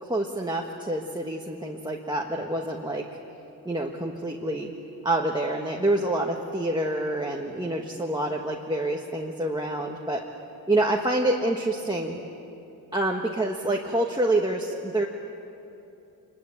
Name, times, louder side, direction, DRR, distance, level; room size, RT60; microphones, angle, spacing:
voice 1, 0.0-3.1 3.6-4.7 5.0-10.2 10.7-12.2 12.9-15.1, right 1 dB, 10° right, 0 dB, 1.5 m, -27 dB
26.0 x 21.5 x 8.4 m, 2.8 s
wide cardioid pair, 115°, 39 cm